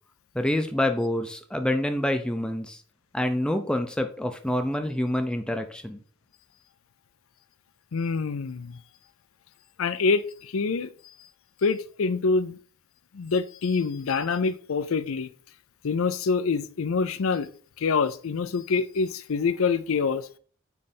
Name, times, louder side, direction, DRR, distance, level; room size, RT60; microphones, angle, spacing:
voice 1, 0.3-2.8 3.1-6.0, left 1 dB, 5° left, 0.5 m, -27 dB
voice 2, 7.9-8.8 9.8-10.9 11.6-12.6 13.1-15.3 15.8-17.5 17.8-20.3, left 4 dB, 80° left, 0.5 m, -26 dB
8.7 x 3.3 x 4.2 m
head